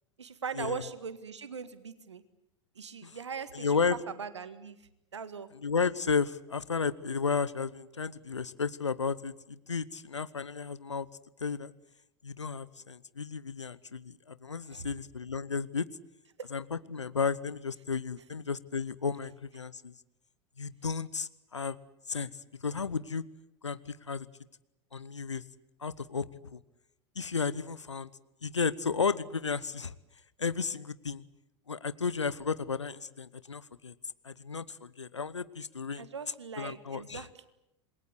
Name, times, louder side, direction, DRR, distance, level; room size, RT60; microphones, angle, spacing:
voice 1, 0.2-2.2 2.7-3.8 4.2-4.8 5.1-5.5 14.7-14.9 16.4-16.5 35.9-37.5, right 6 dB, 80° right, 13 dB, 1.7 m, -40 dB
voice 2, 3.5-4.0 5.6-11.1 11.4-11.7 12.2-15.9 16.5-19.9 20.6-21.8 22.1-22.3 22.6-23.2 23.6-24.3 24.9-25.4 25.8-26.6 27.2-28.1 28.4-29.9 30.4-31.2 31.7-33.9 34.2-36.1 36.6-37.2, left 5 dB, 85° left, 18 dB, 0.9 m, -33 dB
27.5 x 21.5 x 8.2 m, 0.85 s
figure-of-eight pair, 80°, 15 cm